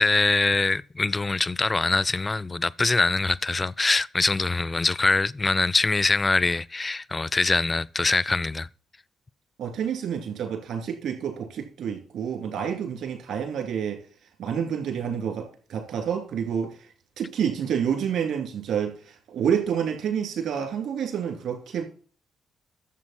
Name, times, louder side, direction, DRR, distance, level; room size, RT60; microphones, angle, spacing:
voice 1, 0.0-8.7, left 3 dB, 30° left, 0.5 m, -23 dB
voice 2, 9.6-14.0 14.4-16.9 17.2-21.8, right 8 dB, 70° right, 2.9 m, -28 dB
12.5 x 7.3 x 4.3 m
hypercardioid pair, 40°, 0 cm